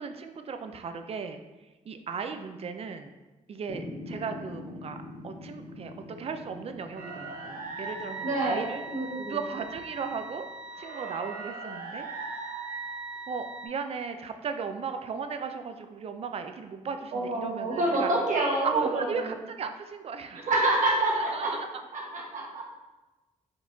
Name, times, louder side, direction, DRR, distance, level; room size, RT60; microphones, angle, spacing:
voice 1, 0.0-1.4 1.9-3.1 3.5-5.0 5.2-8.8 9.3-10.5 10.8-12.1 13.3-18.1 18.6-20.5 21.1-21.7, right 5 dB, 45° right, 7 dB, 0.4 m, -36 dB
sound 1, 3.7-10.1, left 2 dB, 20° left, 1.1 m, -45 dB
sound 2, 6.9-13.7, right 3 dB, 90° right, 1.0 m, -39 dB
voice 2, 8.2-8.6 8.9-9.4 17.1-19.3 20.3-21.5 21.9-22.6, right 2 dB, 70° right, -3 dB, 1.3 m, -27 dB
4.8 x 4.0 x 2.7 m, 1.1 s
cardioid pair, 90°, 14 cm